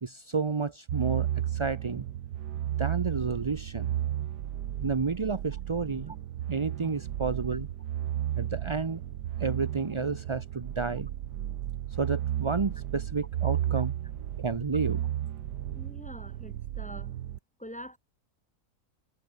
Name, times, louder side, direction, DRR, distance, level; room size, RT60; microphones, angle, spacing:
voice 1, 0.0-2.1 2.8-4.0 4.8-6.1 6.5-7.7 8.4-9.0 9.4-11.1 12.0-13.9 14.4-15.0, right 4 dB, 30° right, 0.5 m, -31 dB
sound 1, 0.9-17.4, right 11 dB, 90° right, 1.5 m, -33 dB
voice 2, 15.7-17.1 17.6-18.0, equal, 5° left, 6.2 m, -45 dB
omnidirectional pair, 1.7 m